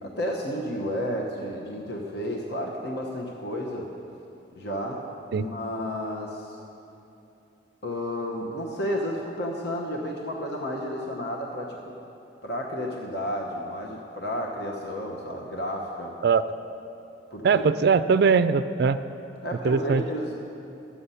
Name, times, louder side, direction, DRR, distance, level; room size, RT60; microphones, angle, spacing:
voice 1, 0.0-3.9 4.5-5.0 5.3-6.6 7.8-11.9 12.4-16.1 17.3-17.6 19.4-20.3, equal, 60° left, -1 dB, 1.0 m, -32 dB
voice 2, 17.4-19.0 19.6-20.0, right 5 dB, 55° right, 13 dB, 0.3 m, -21 dB
13.0 x 8.6 x 5.5 m, 2.8 s
head